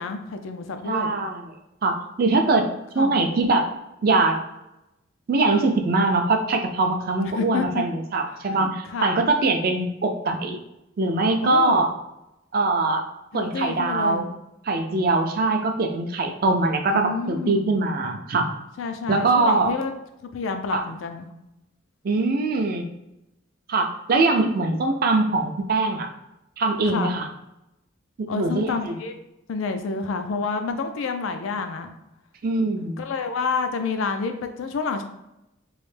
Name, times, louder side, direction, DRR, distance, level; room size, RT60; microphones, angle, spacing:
voice 1, 0.0-1.1 2.3-2.7 3.0-3.1 7.2-7.8 8.9-9.2 11.4-11.8 13.3-14.2 16.9-17.7 18.8-19.9 20.3-21.3 26.9-27.2 28.3-29.1 29.5-31.9 33.0-35.0, left 4 dB, 85° left, 7 dB, 0.4 m, -29 dB
voice 2, 0.8-1.5 1.8-2.7 2.9-3.7 4.0-4.4 5.3-10.6 11.0-11.9 12.5-13.0 13.3-14.3 14.7-18.5 19.1-19.7 20.7-20.8 22.0-22.9 23.7-26.1 26.6-27.3 28.2-29.0 32.4-33.0, right 3 dB, 50° right, 4 dB, 0.4 m, -22 dB
3.1 x 2.1 x 3.2 m, 0.90 s
head